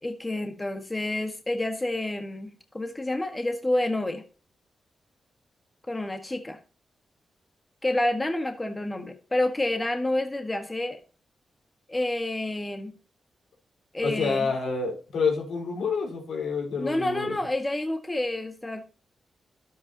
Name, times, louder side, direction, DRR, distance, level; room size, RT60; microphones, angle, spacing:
voice 1, 0.0-4.2 5.9-6.6 7.8-11.0 11.9-12.9 13.9-14.5 16.8-18.8, left 1 dB, 25° left, 6 dB, 1.6 m, -29 dB
voice 2, 14.0-17.4, left 5 dB, 80° left, -1 dB, 4.7 m, -28 dB
12.0 x 8.3 x 2.9 m, 0.37 s
supercardioid pair, 45°, 0 cm